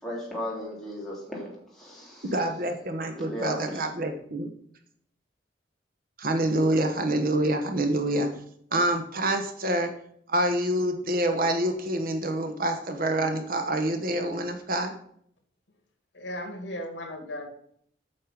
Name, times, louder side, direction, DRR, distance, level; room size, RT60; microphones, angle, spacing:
voice 1, 0.0-2.3 3.2-3.8, left 1 dB, ahead, -5 dB, 3.5 m, -36 dB
voice 2, 2.2-4.5 6.2-8.3 8.7-9.9 10.3-14.9, right 1 dB, 50° right, 6 dB, 1.1 m, -26 dB
voice 3, 16.1-17.5, left 1 dB, 70° left, 5 dB, 2.1 m, -36 dB
8.7 x 6.5 x 5.9 m, 0.66 s
head